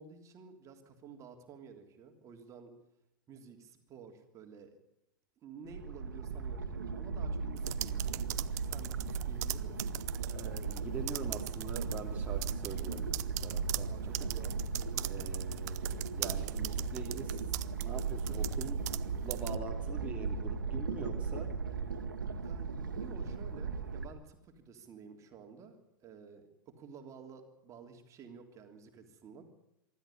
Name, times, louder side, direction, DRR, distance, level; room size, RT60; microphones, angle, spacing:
voice 1, 0.0-2.7 3.3-4.7 5.4-10.3 13.8-15.1 22.4-29.4, right 6 dB, 30° right, 4 dB, 3.2 m, -52 dB
sound 1, 5.7-24.1, right 5 dB, 75° right, 2.1 m, -37 dB
sound 2, 7.6-10.8 11.1-12.0 12.4-19.0 19.3-19.5, right 17 dB, 55° right, 0.8 m, -40 dB
voice 2, 10.3-13.1 13.4-14.3 15.0-18.9 19.2-21.5, right 4 dB, 15° right, -2 dB, 2.8 m, -44 dB
24.5 x 13.5 x 9.9 m, 0.84 s
figure-of-eight pair, 100°, 11 cm